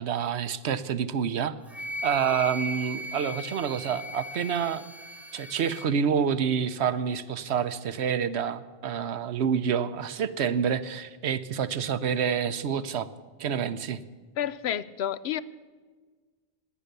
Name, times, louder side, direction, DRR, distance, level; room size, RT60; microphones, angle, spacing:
voice 1, 0.0-1.6 2.0-4.8 5.3-13.1 13.4-14.0, right 7 dB, 90° right, 13 dB, 1.0 m, -28 dB
Wind instrument woodwind instrument, 1.7-5.9, equal, ahead, 1.1 m, -37 dB
voice 2, 14.4-15.4, left 10 dB, 80° left, 16 dB, 0.9 m, -30 dB
17.0 x 10.0 x 6.7 m, 1.4 s
omnidirectional pair, 1.1 m